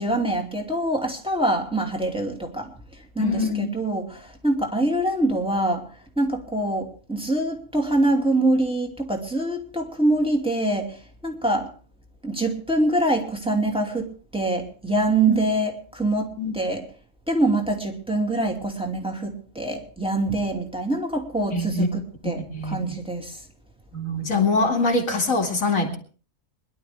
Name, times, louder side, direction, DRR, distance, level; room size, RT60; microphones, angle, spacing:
voice 1, 0.0-2.7 3.1-5.8 6.2-11.7 12.2-16.8 17.3-23.4, right 2 dB, 5° right, 2 dB, 2.5 m, -24 dB
voice 2, 3.2-3.7 15.3-15.4 16.4-16.5 21.5-21.9 22.5-22.8 23.9-26.0, left 3 dB, 75° left, 2 dB, 2.7 m, -23 dB
22.5 x 11.5 x 3.4 m, 0.38 s
omnidirectional pair, 1.4 m